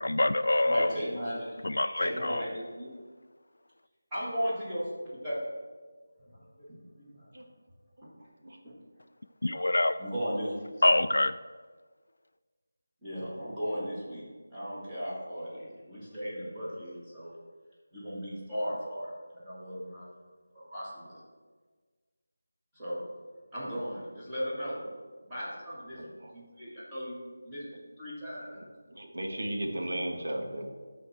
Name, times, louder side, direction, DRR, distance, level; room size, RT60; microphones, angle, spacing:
voice 1, 0.0-1.0 1.6-2.4 9.4-9.9 10.8-11.3, left 2 dB, 85° left, 10 dB, 0.3 m, -25 dB
voice 2, 0.6-1.7 2.0-2.9 4.1-5.4 6.2-7.3 8.6-8.7 10.0-10.6 13.0-17.4 17.9-19.2 19.4-20.1 20.5-21.2 22.7-23.0 23.5-24.8 25.2-27.2 27.4-27.6 28.0-28.6, equal, 10° right, -11 dB, 2.2 m, -36 dB
voice 3, 25.9-26.3 28.4-28.6 28.9-30.7, right 1 dB, 60° right, 2 dB, 1.7 m, -35 dB
11.5 x 4.4 x 6.0 m, 1.5 s
figure-of-eight pair, 175°, 0 cm